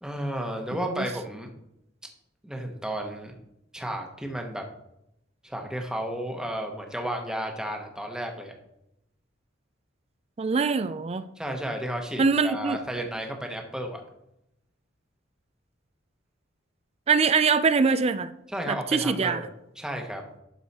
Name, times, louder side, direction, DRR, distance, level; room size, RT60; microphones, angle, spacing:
voice 1, 0.0-1.5 2.4-3.4 3.7-4.6 5.4-8.5 11.4-14.0 18.5-19.5 19.8-20.2, right 1 dB, 5° right, 2 dB, 1.1 m, -33 dB
voice 2, 0.7-1.1 10.4-11.2 12.2-12.8 17.1-18.3 18.7-19.4, right 5 dB, 35° right, 13 dB, 0.4 m, -23 dB
11.0 x 4.7 x 4.2 m, 0.83 s
head